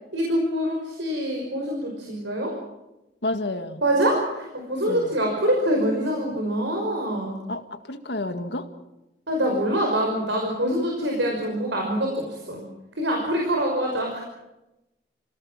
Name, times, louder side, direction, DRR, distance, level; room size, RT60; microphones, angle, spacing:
voice 1, 0.1-2.6 3.8-7.4 9.3-12.6 12.9-14.2, equal, 90° right, 0 dB, 5.7 m, -25 dB
voice 2, 3.2-3.8 4.9-5.2 7.5-8.7, left 2 dB, 70° left, 7 dB, 2.0 m, -30 dB
28.5 x 18.5 x 7.5 m, 0.95 s
head